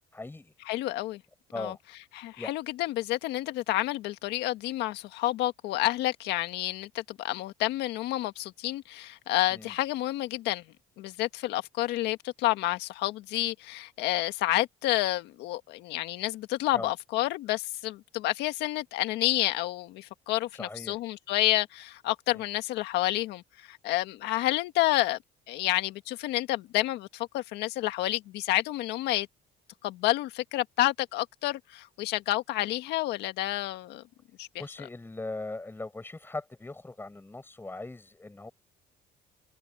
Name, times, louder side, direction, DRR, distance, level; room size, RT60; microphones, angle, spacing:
voice 1, 0.1-0.5 1.5-1.8 2.4-2.5 9.5-9.7 16.7-16.9 20.5-21.0 22.3-22.4 34.6-38.5, left 2 dB, 15° left, 5.0 m, -39 dB
voice 2, 0.7-1.2 1.6-1.8 2.1-10.6 11.0-23.4 23.7-25.2 25.5-29.3 29.8-34.0 34.4-34.5, left 16 dB, 90° left, 1.7 m, -29 dB
cardioid pair, 110°, 17 cm